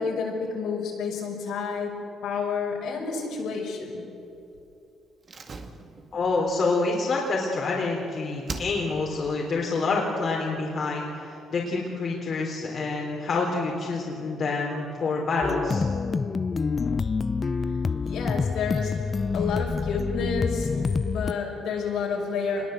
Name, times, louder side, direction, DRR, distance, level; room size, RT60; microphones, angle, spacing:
voice 1, 0.0-2.0 2.2-4.1 18.0-22.7, left 5 dB, 85° left, -1 dB, 6.2 m, -30 dB
Slam, 5.2-8.0 8.4-9.2 9.5-9.6, right 3 dB, 40° right, 1.9 m, -40 dB
voice 2, 6.1-15.8, left 3 dB, 55° left, -2 dB, 3.5 m, -27 dB
sound 1, 15.4-21.3, left 4 dB, 35° left, 0.6 m, -27 dB
25.5 x 20.5 x 8.0 m, 2.8 s
cardioid pair, 90°, 0 cm